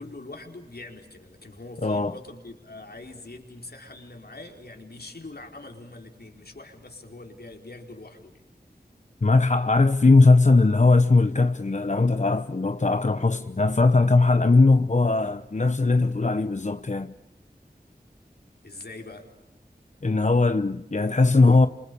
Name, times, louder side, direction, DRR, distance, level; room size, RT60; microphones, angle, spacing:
voice 1, 0.0-8.4 18.6-19.3, left 2 dB, 70° left, 4.6 m, -43 dB
voice 2, 1.8-2.1 9.2-17.1 20.0-21.7, left 3 dB, 45° left, 1.0 m, -19 dB
30.0 x 27.5 x 6.9 m
wide cardioid pair, 50°, 17 cm